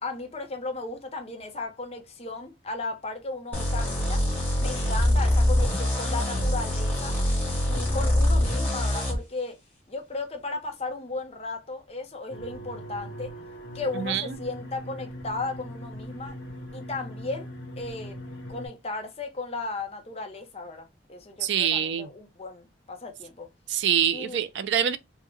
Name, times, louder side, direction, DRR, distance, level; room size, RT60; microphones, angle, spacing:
voice 1, 0.0-4.2 4.6-7.2 7.7-9.6 9.9-13.3 13.7-16.4 16.7-17.5 17.8-18.2 18.5-23.5 24.1-24.4, left 3 dB, 30° left, 0.7 m, -35 dB
sound 1, 3.5-9.2, left 1 dB, 10° left, 1.2 m, -24 dB
sound 2, 12.3-18.7, equal, 80° left, 0.9 m, -40 dB
voice 2, 13.9-14.4 21.4-22.1 23.7-25.0, right 9 dB, 70° right, 0.4 m, -25 dB
3.6 x 2.1 x 3.0 m
head